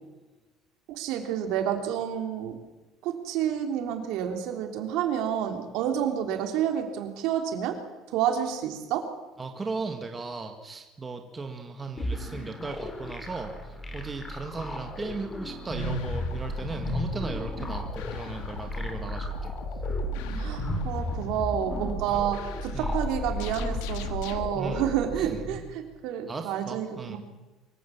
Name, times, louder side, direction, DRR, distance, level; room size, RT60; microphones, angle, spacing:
voice 1, 0.9-2.6 3.0-7.8 8.1-9.1 20.4-27.2, right 9 dB, 70° right, 5 dB, 3.5 m, -29 dB
voice 2, 9.4-19.5 22.1-22.2 22.7-23.0 24.5-24.9 25.2-25.4 26.3-27.2, right 3 dB, 20° right, 4 dB, 2.0 m, -37 dB
sound 1, 12.0-25.6, equal, 15° left, 3.2 m, -34 dB
sound 2, 15.8-24.5, left 9 dB, 90° left, 1.7 m, -40 dB
24.0 x 15.0 x 7.4 m, 1.1 s
cardioid pair, 145°, 0 cm